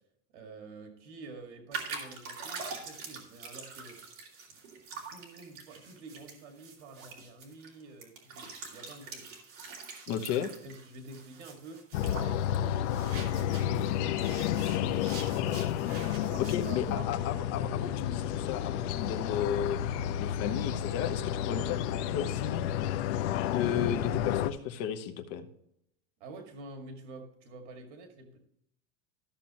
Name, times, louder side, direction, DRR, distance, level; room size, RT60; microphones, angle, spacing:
voice 1, 0.3-4.0 4.5-4.6 4.9-9.3 10.6-11.9 12.2-15.6 16.2-17.1 20.4-20.6 26.2-28.4, right 3 dB, 75° right, 4 dB, 2.1 m, -48 dB
sound 1, 1.7-13.9 14.2-16.7, right 5 dB, 40° right, 2.6 m, -44 dB
voice 2, 10.1-10.5 16.4-19.8 20.2-22.7 23.5-25.5, left 9 dB, 45° left, 8 dB, 1.1 m, -34 dB
sound 2, 11.9-24.5, left 10 dB, 75° left, 0.7 m, -31 dB
14.0 x 6.9 x 3.0 m, 0.76 s
supercardioid pair, 160°, 35 cm